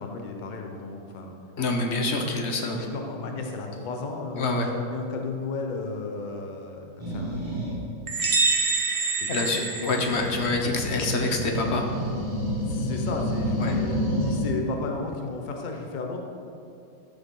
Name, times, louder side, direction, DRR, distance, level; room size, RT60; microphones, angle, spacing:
voice 1, 0.0-1.3 2.8-7.5 9.0-9.4 9.8-10.3 12.6-16.2, left 3 dB, 80° left, 2 dB, 0.4 m, -34 dB
voice 2, 1.6-2.8 4.4-4.7 9.3-11.9 13.6-13.8, left 2 dB, 55° left, 3 dB, 0.8 m, -26 dB
sound 1, 7.0-7.8 9.9-14.5, equal, 25° right, 2.2 m, -29 dB
sound 2, 8.1-10.6, right 3 dB, 50° right, 0.6 m, -26 dB
12.5 x 6.9 x 3.7 m, 2.6 s
omnidirectional pair, 2.1 m